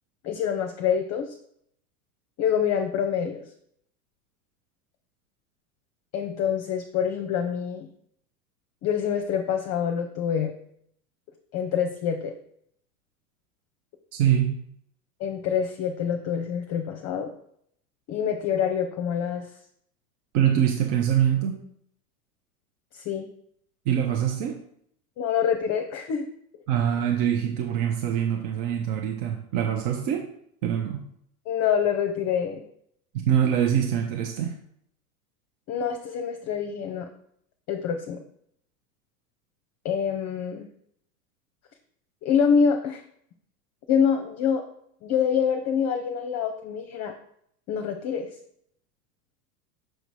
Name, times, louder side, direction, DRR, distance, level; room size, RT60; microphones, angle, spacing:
voice 1, 0.2-1.3 2.4-3.4 6.1-7.9 8.8-10.5 11.5-12.3 15.2-17.3 18.1-19.5 22.9-23.3 25.2-26.3 31.5-32.6 35.7-37.1 37.7-38.2 39.8-40.7 42.2-43.0 43.9-44.6 45.0-47.1 47.7-48.3, left 7 dB, 35° left, 5 dB, 0.7 m, -26 dB
voice 2, 14.1-14.6 20.3-21.6 23.9-24.6 26.7-30.3 30.6-31.0 33.3-34.6, right 9 dB, 50° right, 3 dB, 0.9 m, -24 dB
6.4 x 3.9 x 4.8 m, 0.70 s
hypercardioid pair, 95°, 46 cm